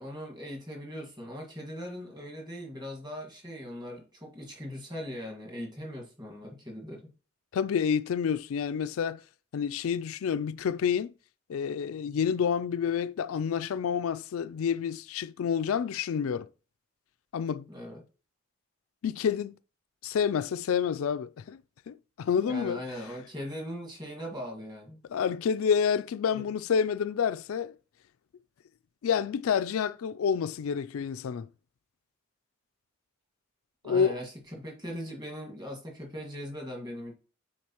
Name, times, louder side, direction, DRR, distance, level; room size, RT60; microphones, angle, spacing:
voice 1, 0.0-7.1 17.7-18.0 22.4-25.0 26.3-26.5 33.8-34.3 34.6-37.1, equal, 20° right, 1.7 m, -40 dB
voice 2, 7.5-9.2 9.5-11.1 11.5-16.5 17.3-17.7 19.0-19.5 20.0-21.6 21.9-22.8 25.1-27.7 29.0-31.5 33.8-34.2, left 7 dB, 75° left, 0.3 m, -28 dB
9.3 x 4.1 x 3.0 m
head